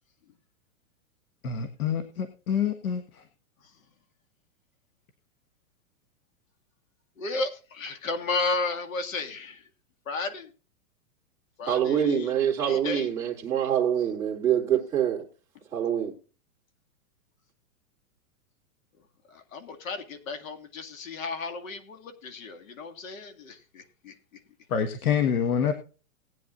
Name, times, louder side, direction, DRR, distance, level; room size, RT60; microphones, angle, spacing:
voice 1, 1.4-3.2 24.7-25.7, left 7 dB, 85° left, 1.7 m, -27 dB
voice 2, 7.2-9.7 10.1-10.5 11.6-12.3 12.7-13.1 19.3-24.4, left 3 dB, 65° left, 2.3 m, -33 dB
voice 3, 11.7-15.3 15.7-16.1, right 9 dB, 5° right, 2.3 m, -25 dB
19.0 x 9.3 x 2.5 m
supercardioid pair, 180°, 43 cm